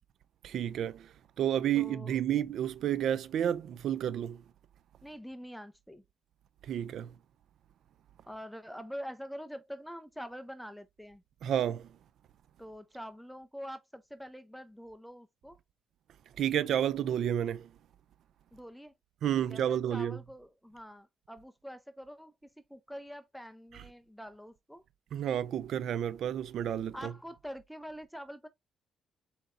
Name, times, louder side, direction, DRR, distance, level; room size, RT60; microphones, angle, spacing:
voice 1, 0.4-4.4 6.6-7.1 11.4-11.9 16.4-17.7 19.2-20.2 25.1-27.1, right 10 dB, 70° right, 0.3 m, -31 dB
voice 2, 1.7-2.2 5.0-6.0 8.3-11.2 12.6-15.6 18.5-18.9 19.4-24.8 26.9-28.5, equal, ahead, 0.5 m, -45 dB
4.2 x 3.9 x 2.5 m
cardioid pair, 90°, 0 cm